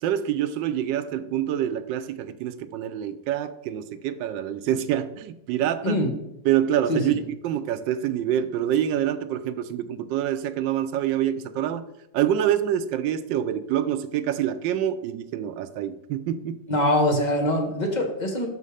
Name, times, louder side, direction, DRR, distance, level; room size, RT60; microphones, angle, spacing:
voice 1, 0.0-6.0 6.4-11.9 12.1-16.6, right 10 dB, 80° right, 1.2 m, -26 dB
voice 2, 5.8-6.2 6.9-7.2 16.7-18.5, left 1 dB, 30° left, 1.1 m, -23 dB
6.3 x 5.4 x 4.9 m
omnidirectional pair, 2.0 m